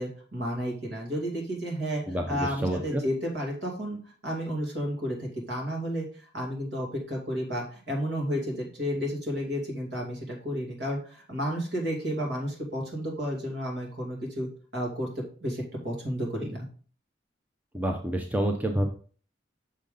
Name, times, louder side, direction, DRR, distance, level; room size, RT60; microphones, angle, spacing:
voice 1, 0.0-16.7, equal, 65° right, 0 dB, 2.6 m, -32 dB
voice 2, 2.1-3.0 17.7-18.9, right 1 dB, 10° right, 3 dB, 0.6 m, -28 dB
6.4 x 5.2 x 3.8 m, 0.42 s
head